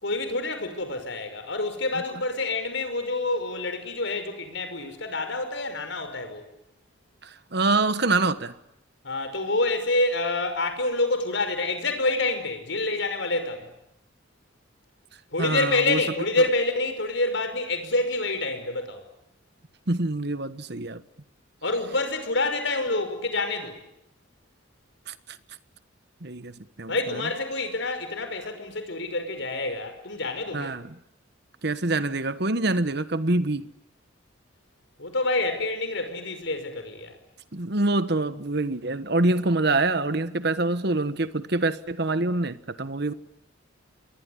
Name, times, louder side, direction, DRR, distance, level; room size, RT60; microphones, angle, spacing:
voice 1, 0.0-6.4 9.0-13.7 15.3-19.0 21.6-23.8 26.9-30.7 35.0-37.2, left 2 dB, 70° left, 5.5 m, -27 dB
voice 2, 7.2-8.5 15.4-16.0 19.9-21.0 25.1-25.2 26.2-27.2 30.5-31.0 31.6-33.7 37.5-43.1, right 2 dB, 55° right, 1.3 m, -25 dB
27.5 x 22.0 x 9.9 m
head